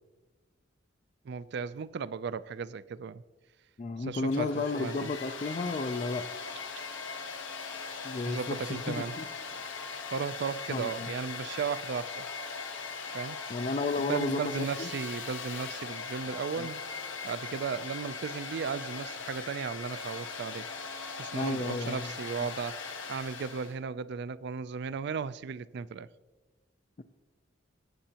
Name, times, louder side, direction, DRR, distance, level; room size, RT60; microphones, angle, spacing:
voice 1, 1.2-3.2 4.0-5.1 8.2-9.1 10.1-12.3 13.1-13.4 14.0-16.8 17.2-20.7 21.1-26.1, right 6 dB, 60° right, 0.4 m, -35 dB
voice 2, 3.8-6.3 8.0-9.2 10.7-11.1 13.5-14.9 16.6-16.7 21.3-22.1, left 3 dB, 35° left, 0.4 m, -33 dB
Domestic sounds home sounds, 4.2-23.8, left 5 dB, 80° left, 1.3 m, -40 dB
17.5 x 7.8 x 2.9 m
head